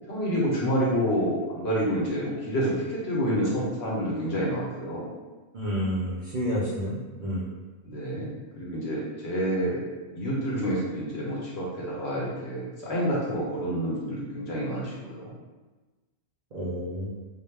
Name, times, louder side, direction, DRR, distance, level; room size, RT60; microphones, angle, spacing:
voice 1, 0.1-5.1 7.8-9.8 10.1-15.4, equal, 60° left, -5 dB, 0.9 m, -28 dB
voice 2, 5.5-7.4 16.5-17.3, equal, 65° right, -7 dB, 0.5 m, -30 dB
2.2 x 2.1 x 3.1 m, 1.2 s
omnidirectional pair, 1.3 m